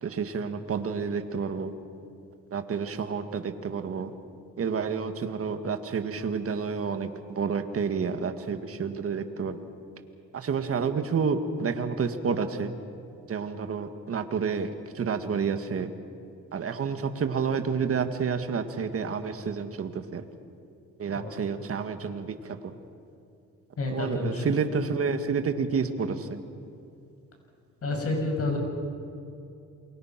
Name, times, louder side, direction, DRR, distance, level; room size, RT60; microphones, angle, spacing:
voice 1, 0.0-1.7 2.5-4.1 4.6-9.6 10.3-12.7 13.3-15.9 16.5-20.2 21.0-22.7 23.9-26.4, right 5 dB, 50° right, 8 dB, 1.9 m, -29 dB
voice 2, 21.1-21.6 23.8-24.4 27.8-28.6, left 2 dB, 50° left, 2 dB, 6.7 m, -29 dB
28.5 x 23.0 x 6.0 m, 2.6 s
cardioid pair, 90°, 30 cm